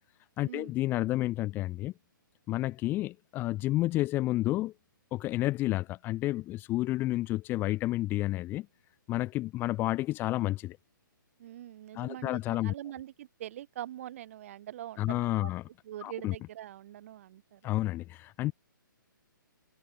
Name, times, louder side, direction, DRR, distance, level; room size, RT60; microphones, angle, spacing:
voice 1, 0.4-1.9 2.5-4.7 5.1-8.7 9.1-10.8 11.9-12.7 15.0-15.6 16.0-16.3 17.6-18.5, left 16 dB, 20° left, 1.0 m, -30 dB
voice 2, 11.4-15.5 15.8-17.7, right 12 dB, 40° right, 5.9 m, -43 dB
figure-of-eight pair, 125°, 11 cm